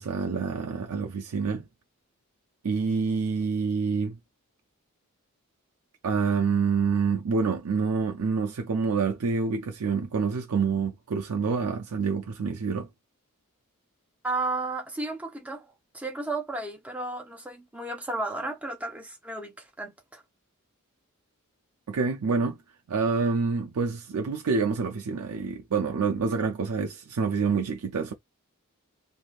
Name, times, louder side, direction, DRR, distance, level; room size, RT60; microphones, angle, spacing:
voice 1, 0.0-1.7 2.6-4.2 6.0-12.9 21.9-22.6 22.9-28.1, right 5 dB, 80° right, 0.5 m, -27 dB
voice 2, 14.2-15.6 15.9-20.2, right 2 dB, 5° right, 0.8 m, -33 dB
3.4 x 2.6 x 2.4 m
head